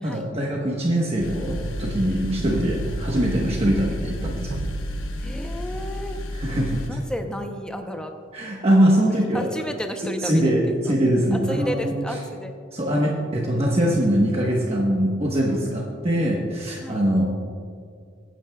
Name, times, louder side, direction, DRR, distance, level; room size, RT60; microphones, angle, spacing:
voice 1, 0.0-4.5 6.4-7.0 8.3-9.5 10.2-12.2 12.7-17.2, equal, 30° right, -3 dB, 1.2 m, -22 dB
sound 1, 1.2-6.9, left 1 dB, 85° left, 1.0 m, -32 dB
sound 2, 1.5-6.4 6.8-7.0, right 3 dB, 60° right, 0.4 m, -35 dB
voice 2, 5.2-6.2 6.9-8.1 9.3-10.9 11.3-12.5 15.5-16.3 16.8-17.0, equal, 5° left, 4 dB, 0.7 m, -33 dB
22.0 x 9.2 x 2.3 m, 2.2 s
head